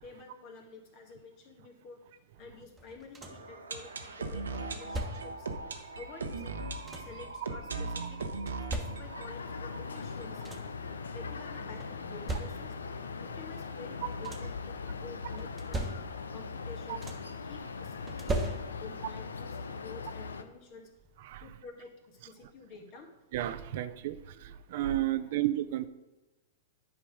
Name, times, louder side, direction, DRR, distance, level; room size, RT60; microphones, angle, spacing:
voice 1, 0.0-2.0 2.4-5.5 6.0-6.6 7.0-8.2 8.7-10.6 11.1-12.7 13.2-15.9 16.3-17.1 17.4-20.9 21.4-23.1 25.1-25.4, left 4 dB, 45° left, 2 dB, 2.0 m, -50 dB
sound 1, 2.8-3.6 4.5-5.5 6.4-7.3 8.2-9.4 10.0-10.1 10.3-10.9 11.8-13.0 13.9-14.7 15.4-16.4 16.7-17.4 18.1-19.1 20.4-20.5 21.0-21.2, right 1 dB, 15° right, 1.2 m, -39 dB
sound 2, 3.2-11.0 11.2-11.3 11.5-11.6 12.2-12.3, right 3 dB, 90° right, 0.9 m, -39 dB
sound 3, 8.9-20.4, left 4 dB, 85° left, 0.6 m, -40 dB
voice 2, 23.3-25.9, right 14 dB, 60° right, 13 dB, 0.5 m, -32 dB
9.7 x 5.1 x 5.0 m, 1.1 s
hypercardioid pair, 110°, 0 cm